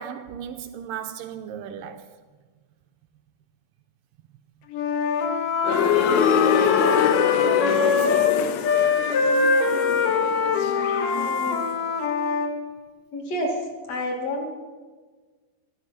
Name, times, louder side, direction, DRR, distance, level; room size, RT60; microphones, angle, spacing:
voice 1, 0.0-2.1 6.6-8.5, right 9 dB, 80° right, 2.2 m, -35 dB
Wind instrument woodwind instrument, 4.7-8.4 8.6-12.5, left 5 dB, 65° left, 2.7 m, -23 dB
sound 1, 5.6-11.5, left 7 dB, 85° left, 1.6 m, -24 dB
voice 2, 11.1-11.7 13.1-13.6 13.9-14.5, left 1 dB, 45° left, 3.3 m, -29 dB
15.0 x 13.0 x 5.8 m
omnidirectional pair, 4.4 m